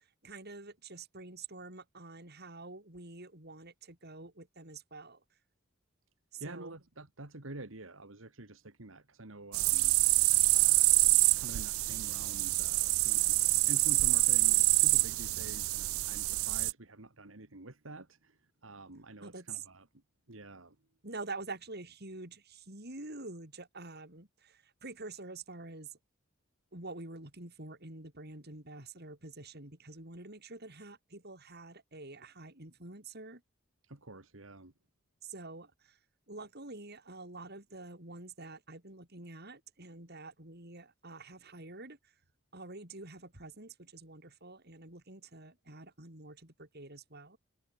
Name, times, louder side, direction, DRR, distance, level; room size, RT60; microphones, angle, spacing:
voice 1, 0.0-5.2 6.3-6.7 19.2-19.6 21.0-25.9 26.7-33.4 35.2-36.0 36.3-42.0 42.5-47.4, right 3 dB, 50° right, 5.5 m, -47 dB
voice 2, 6.4-11.0 11.4-19.9 20.3-20.8 33.8-34.7, right 2 dB, 70° right, 2.3 m, -48 dB
sound 1, 9.5-16.7, right 23 dB, 90° right, 0.3 m, -26 dB
head